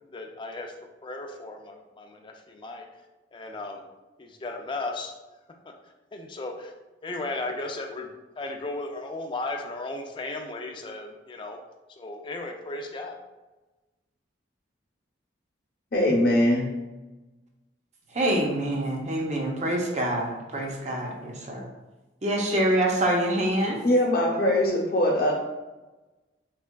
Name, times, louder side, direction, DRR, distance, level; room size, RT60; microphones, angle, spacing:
voice 1, 0.1-0.7 1.0-2.9 3.3-3.8 4.2-5.1 5.7-5.8 6.1-6.7 7.0-11.6 12.0-13.2, left 2 dB, 25° left, 3 dB, 0.3 m, -35 dB
voice 2, 15.9-16.7 23.8-25.3, left 1 dB, 55° left, -2 dB, 0.8 m, -22 dB
voice 3, 18.1-21.6 22.2-23.8, right 1 dB, 35° right, 0 dB, 0.6 m, -26 dB
3.4 x 3.2 x 2.2 m, 1.1 s
head